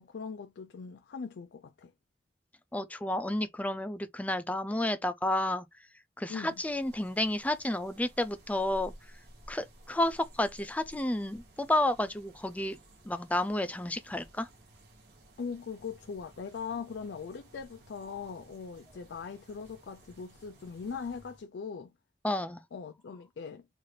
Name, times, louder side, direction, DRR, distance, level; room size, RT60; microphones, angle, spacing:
voice 1, 0.0-1.9 6.3-6.5 15.4-21.9 22.7-23.7, left 5 dB, 85° left, 0.4 m, -40 dB
voice 2, 2.7-5.7 6.2-8.9 9.5-12.8 13.0-14.5 22.2-22.6, left 1 dB, 10° left, 0.4 m, -31 dB
sound 1, 6.3-21.5, right 1 dB, 65° right, 1.1 m, -56 dB
3.9 x 2.5 x 3.2 m
head